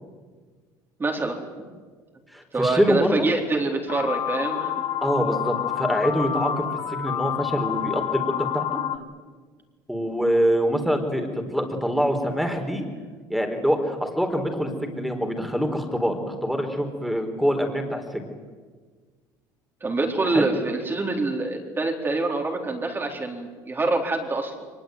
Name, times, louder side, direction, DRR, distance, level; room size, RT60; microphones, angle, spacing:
voice 1, 1.0-1.4 2.5-4.9 19.8-24.6, right 3 dB, 25° right, 2 dB, 4.1 m, -26 dB
voice 2, 2.3-3.3 5.0-6.6 6.9-8.6 9.9-12.8 13.3-18.0 20.3-20.5, equal, ahead, 5 dB, 4.3 m, -24 dB
sound 1, 3.9-9.0, left 10 dB, 45° left, 1.5 m, -28 dB
23.0 x 20.5 x 9.4 m, 1.5 s
supercardioid pair, 95°, 9 cm